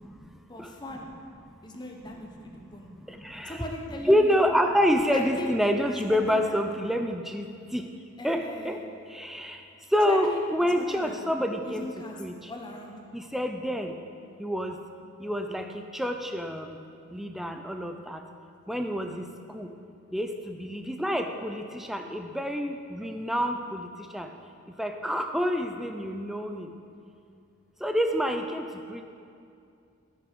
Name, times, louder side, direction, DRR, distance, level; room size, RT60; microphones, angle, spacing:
voice 1, 0.5-1.1 1.6-2.9 3.4-4.4 5.0-5.5 5.9-6.7 8.2-8.8 10.1-11.2 11.6-12.2 12.5-12.9, left 1 dB, 20° left, 1 dB, 0.9 m, -39 dB
voice 2, 3.1-3.6 4.0-7.9 8.2-8.8 9.1-9.6 9.9-11.9 12.2-12.5 13.1-13.9 14.4-14.8 15.2-16.8 17.1-18.2 18.7-19.7 20.1-23.9 24.1-24.3 24.8-26.7 27.8-29.0, equal, ahead, 5 dB, 0.4 m, -27 dB
14.0 x 6.0 x 5.4 m, 2.5 s
head